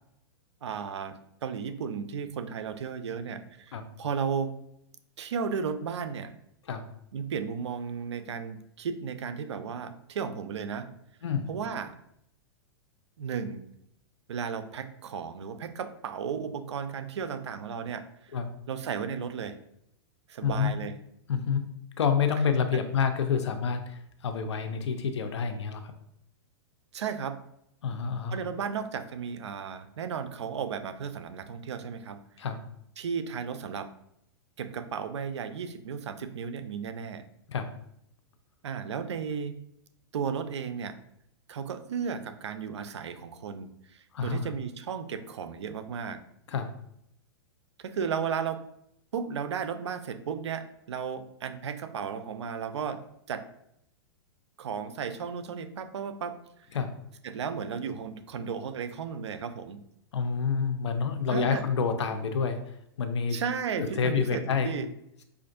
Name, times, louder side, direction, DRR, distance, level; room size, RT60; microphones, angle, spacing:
voice 1, 0.6-4.6 5.2-6.3 7.1-10.9 11.5-11.9 13.2-13.6 14.3-18.4 18.7-19.6 20.3-20.9 22.7-22.8 26.9-27.4 28.3-32.2 33.0-33.9 34.6-37.2 38.6-39.6 40.1-41.0 41.5-46.2 47.8-48.6 49.1-53.5 54.6-56.4 57.2-59.8 61.3-61.6 63.3-64.9, right 6 dB, 90° right, 10 dB, 0.4 m, -34 dB
voice 2, 21.3-21.6 22.0-25.9 27.8-28.4 32.4-32.6 37.5-37.7 44.1-44.5 46.5-46.7 56.7-56.9 60.1-63.4 63.8-64.7, left 6 dB, 90° left, 7 dB, 0.5 m, -28 dB
5.1 x 2.5 x 2.5 m, 0.77 s
hypercardioid pair, 130°, 14 cm